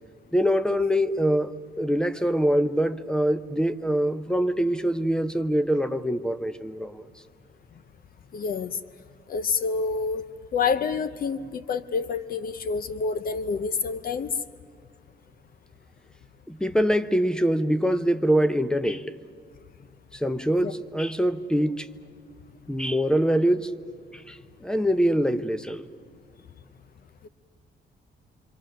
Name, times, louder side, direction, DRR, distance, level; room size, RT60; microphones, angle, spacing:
voice 1, 0.3-7.0 16.5-19.1 20.2-21.8 22.7-23.7 24.3-24.4 24.6-25.8, equal, 5° left, 0.6 m, -24 dB
voice 2, 8.3-8.8 9.3-10.2 10.5-14.3 20.5-20.7 27.2-27.3, left 5 dB, 55° left, 0.7 m, -28 dB
26.0 x 24.5 x 6.5 m
wide cardioid pair, 160°, 18 cm